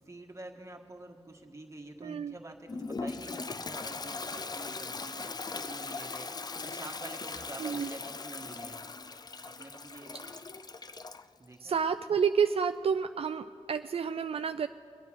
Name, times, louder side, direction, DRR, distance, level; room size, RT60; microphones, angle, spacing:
voice 1, 0.0-8.8 9.6-10.2 11.4-11.8, right 2 dB, 30° right, 2 dB, 1.5 m, -47 dB
voice 2, 2.0-2.3 7.6-7.9 11.6-14.7, right 6 dB, 65° right, 9 dB, 0.4 m, -29 dB
Toilet flush, 2.7-11.3, left 4 dB, 40° left, 0.5 m, -39 dB
22.5 x 9.4 x 6.2 m, 2.3 s
wide cardioid pair, 95°, 11 cm